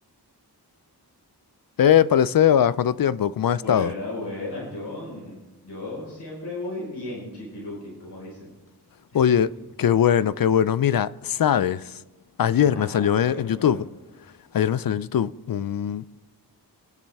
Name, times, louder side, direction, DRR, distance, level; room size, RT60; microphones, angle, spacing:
voice 1, 1.8-3.9 9.1-12.0 12.4-13.9 14.5-16.1, left 9 dB, 60° left, 0.5 m, -21 dB
voice 2, 3.4-5.4 5.6-8.5 9.1-9.4 12.6-13.8, left 2 dB, 80° left, 4.9 m, -35 dB
27.0 x 9.9 x 3.5 m
wide cardioid pair, 115°, 40 cm